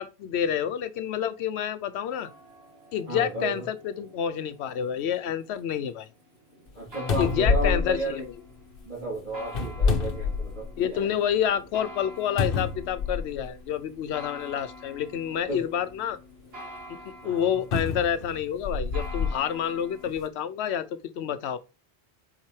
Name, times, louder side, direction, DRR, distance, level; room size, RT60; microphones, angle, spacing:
voice 1, 0.0-2.3 2.9-6.1 7.2-8.2 10.8-16.2 16.9-17.0 17.2-21.6, left 9 dB, 80° left, 0.9 m, -28 dB
sound 1, 2.1-20.1, equal, 65° right, 2.0 m, -47 dB
voice 2, 3.1-3.6 6.7-8.2 8.8-11.1 15.5-15.6 17.2-17.5, right 1 dB, 45° right, 3.0 m, -33 dB
sound 2, 6.7-6.8 7.1-8.8 9.5-10.9 11.3-11.4 12.4-13.5 14.4-14.5 17.7-19.4 20.1-20.2, left 4 dB, 60° left, 1.0 m, -27 dB
7.2 x 4.7 x 3.2 m
omnidirectional pair, 1.1 m